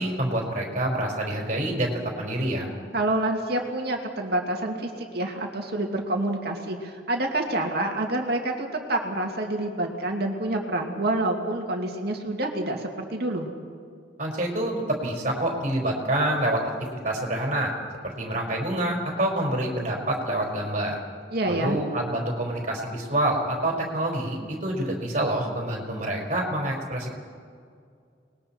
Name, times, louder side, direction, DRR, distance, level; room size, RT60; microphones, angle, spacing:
voice 1, 0.0-2.7 14.2-16.6 17.0-17.7 18.0-21.0 21.5-27.2, right 1 dB, 40° right, -1 dB, 4.6 m, -27 dB
voice 2, 2.9-13.5 21.3-21.8, right 1 dB, 55° right, 2 dB, 2.3 m, -27 dB
29.5 x 20.5 x 4.5 m, 2.2 s
head